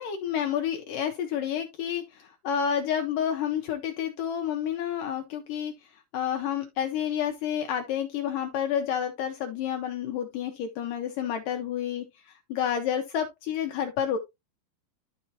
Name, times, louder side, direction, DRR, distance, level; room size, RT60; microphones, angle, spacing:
voice 1, 0.0-14.2, left 9 dB, 75° left, 2.1 m, -30 dB
12.5 x 4.3 x 2.7 m
omnidirectional pair, 4.5 m